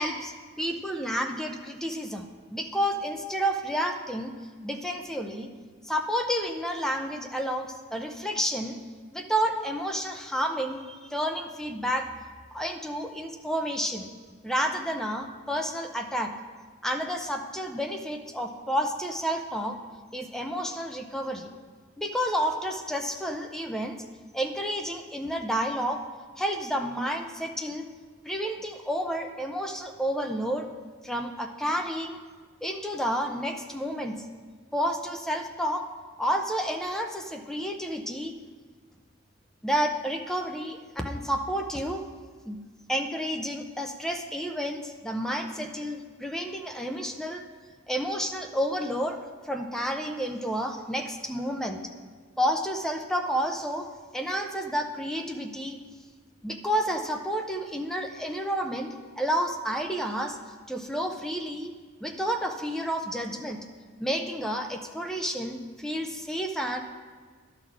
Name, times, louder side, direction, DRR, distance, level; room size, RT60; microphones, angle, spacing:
voice 1, 0.0-4.3 4.6-5.5 5.8-8.8 9.1-12.1 12.5-14.1 14.4-16.3 16.8-19.8 20.1-21.5 22.0-24.0 24.3-26.0 26.4-27.8 28.2-30.7 31.0-32.2 32.6-34.1 34.7-35.9 36.2-38.3 39.6-42.0 42.5-42.6 42.9-47.4 47.9-49.2 49.4-51.8 52.4-53.9 54.1-55.8 56.4-58.9 59.1-60.4 60.7-61.7 62.0-63.6 64.0-66.8, equal, ahead, 4 dB, 0.5 m, -30 dB
11.0 x 4.0 x 7.2 m, 1.5 s
head